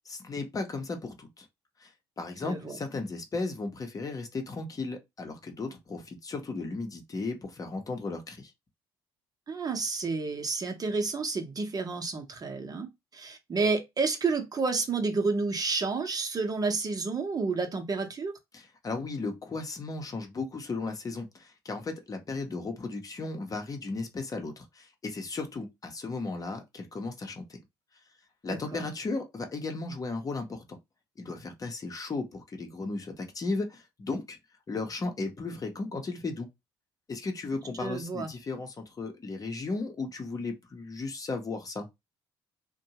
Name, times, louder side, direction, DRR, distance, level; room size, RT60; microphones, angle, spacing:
voice 1, 0.0-1.4 1.8-1.9 2.2-8.5 18.5-27.6 28.4-30.6 31.2-34.4 34.7-36.5 37.1-41.9, left 3 dB, 35° left, 0.8 m, -35 dB
voice 2, 2.4-2.8 9.5-18.3 28.5-28.8 37.8-38.3, right 4 dB, 35° right, 0.8 m, -30 dB
2.6 x 2.2 x 2.9 m
hypercardioid pair, 60°, 11 cm